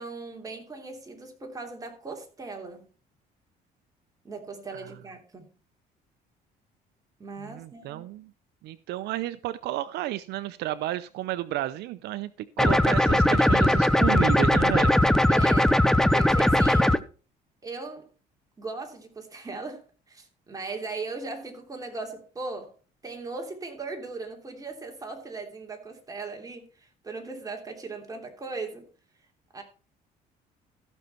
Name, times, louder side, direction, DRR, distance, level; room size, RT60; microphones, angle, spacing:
voice 1, 0.0-2.9 4.2-5.5 7.2-8.0 15.3-15.8 16.1-17.0 17.6-18.1 18.6-22.7 23.0-28.9 29.5-29.6, right 3 dB, 20° right, 3.1 m, -38 dB
voice 2, 7.4-8.3 8.6-12.3 12.6-14.9, right 15 dB, 80° right, 0.6 m, -32 dB
sound 1, 12.6-17.0, left 1 dB, 5° left, 0.6 m, -20 dB
14.5 x 6.4 x 4.5 m
cardioid pair, 110°, 17 cm